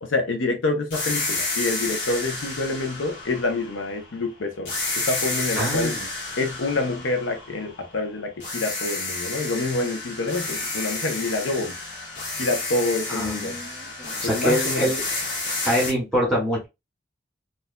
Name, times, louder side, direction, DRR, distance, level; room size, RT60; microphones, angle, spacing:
voice 1, 0.0-6.0 6.4-11.7 12.4-13.6 14.2-14.9, left 2 dB, 85° left, 0.7 m, -27 dB
sound 1, 0.9-4.2 4.7-8.0 8.4-15.9, left 3 dB, 60° left, 1.5 m, -30 dB
voice 2, 5.6-6.0 13.1-15.0 15.6-16.7, equal, 5° left, 1.8 m, -25 dB
4.3 x 2.4 x 2.2 m
head